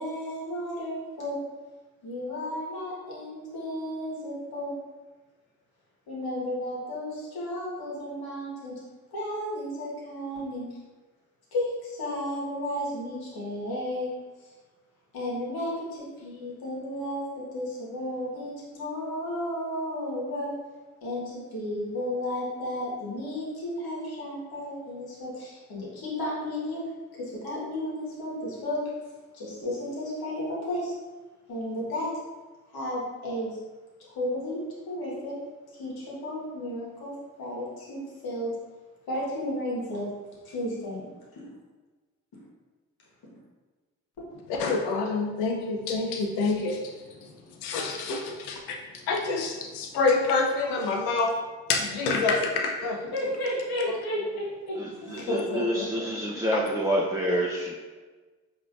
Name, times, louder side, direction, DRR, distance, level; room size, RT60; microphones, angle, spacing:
voice 1, 0.0-1.4 2.0-4.7 6.1-8.8 9.1-10.8 11.5-14.1 15.1-20.5 21.0-26.8 27.2-28.8 29.3-30.9 31.5-32.1 32.7-33.6 34.1-34.6 34.8-35.4 35.8-37.1 37.4-38.5 39.1-40.1 40.4-41.0 53.1-55.3, left 1 dB, 65° left, -5 dB, 1.5 m, -33 dB
voice 2, 44.5-51.4 51.7-53.0 53.9-54.0 55.3-56.1 56.5-56.6, left 3 dB, 80° left, 2 dB, 0.6 m, -27 dB
voice 3, 54.8-57.8, equal, 10° right, -3 dB, 0.5 m, -28 dB
4.9 x 2.8 x 2.5 m, 1.3 s
hypercardioid pair, 40°, 39 cm